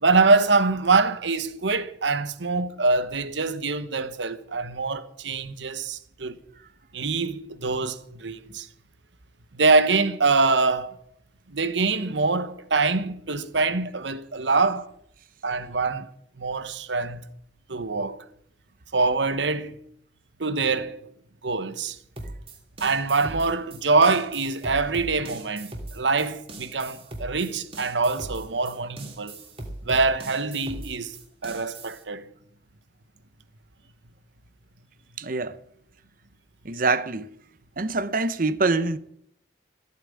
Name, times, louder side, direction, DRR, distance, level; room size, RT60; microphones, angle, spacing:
voice 1, 0.0-6.4 6.9-8.7 9.5-11.0 11.5-14.9 15.4-16.1 16.4-17.2 17.7-18.2 18.9-19.8 20.4-21.0 21.4-22.0 22.8-29.4 29.8-31.1 31.4-32.3, right 3 dB, 80° right, 1.2 m, -24 dB
sound 1, 22.2-32.0, right 2 dB, 35° right, 2.9 m, -39 dB
voice 2, 35.2-35.6 36.6-37.3 37.8-39.0, right 3 dB, 50° right, 0.8 m, -25 dB
15.0 x 8.9 x 8.7 m
head